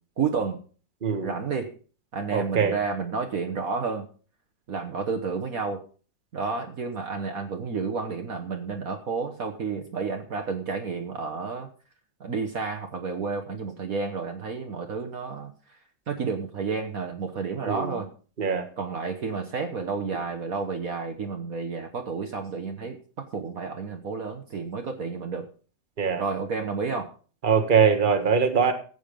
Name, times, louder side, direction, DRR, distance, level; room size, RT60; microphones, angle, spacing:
voice 1, 0.2-0.6 1.2-1.8 2.1-4.1 4.7-5.8 6.3-11.7 12.2-15.5 16.1-18.1 18.8-25.5 26.2-27.1, right 5 dB, 55° right, 4 dB, 1.6 m, -31 dB
voice 2, 1.0-1.3 2.3-2.7 17.7-18.0 18.4-18.7 26.0-26.2 27.4-28.7, right 6 dB, 30° right, 7 dB, 1.5 m, -22 dB
14.5 x 8.4 x 5.2 m, 0.39 s
omnidirectional pair, 1.9 m